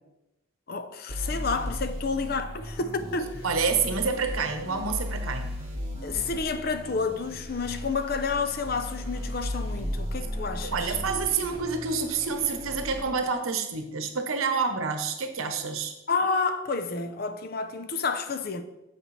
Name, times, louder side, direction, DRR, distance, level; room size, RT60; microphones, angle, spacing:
voice 1, 0.7-3.4 6.0-11.0 16.1-18.6, left 4 dB, 45° left, 0.5 m, -30 dB
sound 1, 1.1-13.0, equal, 25° right, 2.1 m, -36 dB
voice 2, 3.4-5.5 10.6-15.9, right 5 dB, 85° right, 0.9 m, -28 dB
7.7 x 7.6 x 3.2 m
head